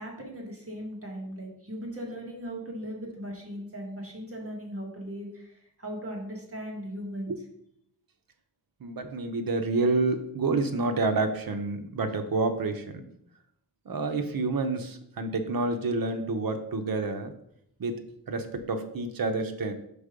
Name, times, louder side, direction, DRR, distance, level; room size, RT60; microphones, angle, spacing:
voice 1, 0.0-7.3, equal, 35° right, -1 dB, 1.6 m, -38 dB
voice 2, 8.8-13.1 13.9-17.3 17.8-18.0 18.3-19.7, right 3 dB, 65° right, 7 dB, 0.8 m, -28 dB
5.2 x 4.5 x 5.0 m, 0.72 s
wide cardioid pair, 115°, 38 cm